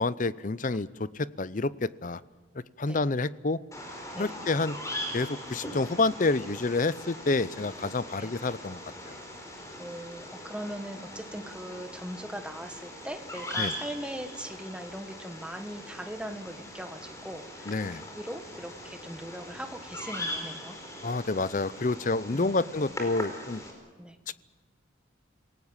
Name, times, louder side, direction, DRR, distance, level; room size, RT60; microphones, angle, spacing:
voice 1, 0.0-2.2 2.8-3.6 4.2-4.8 5.1-8.8 9.1-9.2 13.6-13.7 17.7-18.0 21.0-23.6 24.3-24.4, left 3 dB, 40° left, 17 dB, 0.6 m, -28 dB
Bird vocalization bird call bird song, 3.7-23.7, left 1 dB, 15° left, 4.6 m, -40 dB
voice 2, 9.8-17.7 18.1-20.8 22.3-22.7 24.0-24.2, right 1 dB, 5° right, 7 dB, 1.5 m, -40 dB
27.5 x 18.5 x 7.3 m, 1.3 s
head